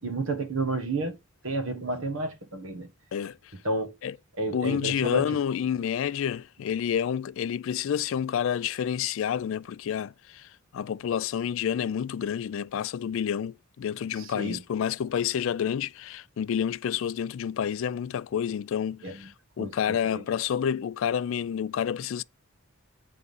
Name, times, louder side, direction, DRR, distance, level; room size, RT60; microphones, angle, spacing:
voice 1, 0.0-1.2 1.4-2.9 3.6-3.9 4.4-5.3 14.2-14.6 19.0-19.1 19.6-19.7 20.0-20.2, right 2 dB, 70° right, 1.3 m, -31 dB
voice 2, 4.5-22.2, left 8 dB, 65° left, 0.3 m, -29 dB
7.9 x 3.6 x 5.3 m
head